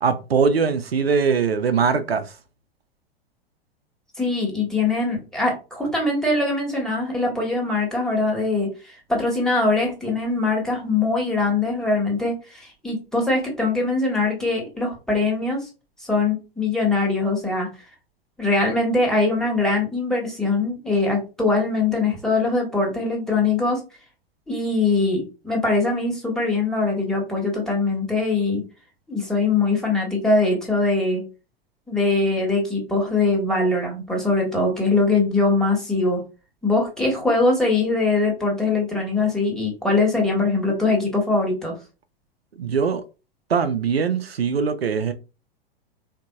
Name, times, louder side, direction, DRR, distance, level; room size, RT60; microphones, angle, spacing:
voice 1, 0.0-2.3 42.6-43.0 43.5-45.1, right 5 dB, 85° right, 0.5 m, -21 dB
voice 2, 4.2-15.7 16.0-17.7 18.4-23.8 24.5-28.6 29.1-31.2 31.9-36.2 36.6-41.7, left 3 dB, ahead, 1.3 m, -22 dB
3.7 x 2.7 x 2.3 m
figure-of-eight pair, 95°, 30 cm